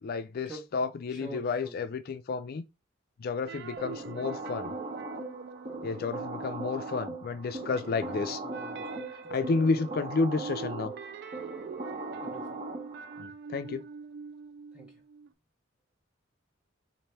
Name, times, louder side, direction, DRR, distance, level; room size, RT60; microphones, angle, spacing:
voice 1, 0.0-2.6 3.2-4.7 5.8-8.4 9.3-10.9 13.2-13.8, left 4 dB, 50° left, 0.4 m, -31 dB
voice 2, 1.1-1.7 8.1-9.0 12.2-12.6 14.7-14.9, right 2 dB, 5° right, 0.7 m, -46 dB
sound 1, 3.5-7.2 7.5-15.3, right 5 dB, 55° right, 0.3 m, -45 dB
sound 2, 3.8-13.2, right 2 dB, 40° right, 0.8 m, -39 dB
4.2 x 2.6 x 3.3 m
head